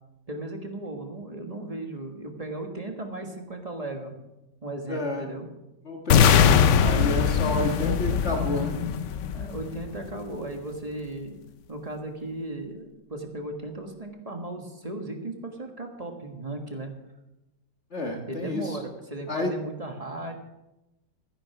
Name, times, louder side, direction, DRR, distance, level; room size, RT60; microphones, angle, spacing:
voice 1, 0.3-4.2 4.6-5.5 9.3-11.4 11.7-16.9 18.3-20.3, right 2 dB, 20° right, 4 dB, 1.4 m, -36 dB
voice 2, 4.9-5.3 5.9-8.7 17.9-18.8 19.3-19.5, left 1 dB, 40° left, 2 dB, 1.7 m, -30 dB
sound 1, 6.1-10.1, left 8 dB, 80° left, 0.6 m, -21 dB
13.0 x 10.0 x 6.0 m, 0.94 s
omnidirectional pair, 2.1 m